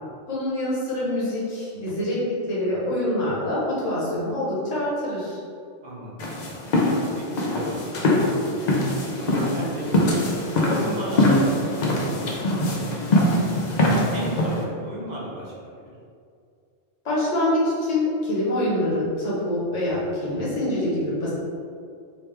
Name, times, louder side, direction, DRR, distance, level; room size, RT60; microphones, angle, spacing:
voice 1, 0.3-5.4 17.0-21.3, left 1 dB, 85° left, -7 dB, 1.4 m, -25 dB
voice 2, 5.8-6.5 6.8-7.6 7.9-10.4 10.7-12.6 12.9-13.0 13.3-13.8 14.1-15.9, right 1 dB, 40° right, -6 dB, 0.8 m, -35 dB
sound 1, 6.2-14.6, left 1 dB, 55° left, 0.5 m, -22 dB
3.2 x 3.0 x 3.3 m, 2.3 s
omnidirectional pair, 1.2 m